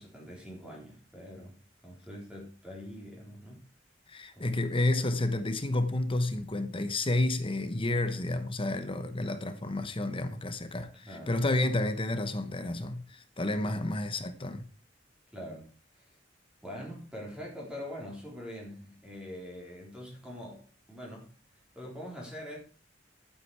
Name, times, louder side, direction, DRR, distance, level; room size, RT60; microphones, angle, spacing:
voice 1, 0.0-1.5 1.8-3.6 4.4-4.5 11.0-11.4 13.6-13.9 15.3-15.7 16.0-16.1 16.6-21.3 21.7-22.6, equal, 5° right, 3.9 m, -44 dB
voice 2, 4.1-14.6, left 2 dB, 30° left, 1.1 m, -30 dB
11.5 x 8.6 x 4.8 m
head